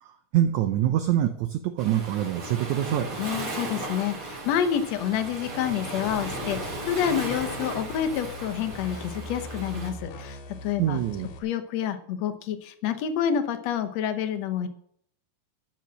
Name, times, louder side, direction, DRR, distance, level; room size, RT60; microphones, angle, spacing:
voice 1, 0.0-3.1 10.8-11.3, right 11 dB, 80° right, 7 dB, 1.7 m, -25 dB
Waves surf, 1.8-9.9, right 2 dB, 40° right, 3.4 m, -36 dB
voice 2, 3.2-11.0 11.4-14.7, left 9 dB, 70° left, 8 dB, 1.6 m, -28 dB
sound 1, 6.1-11.4, left 2 dB, 85° left, 3.4 m, -41 dB
12.0 x 6.1 x 7.4 m, 0.65 s
omnidirectional pair, 4.2 m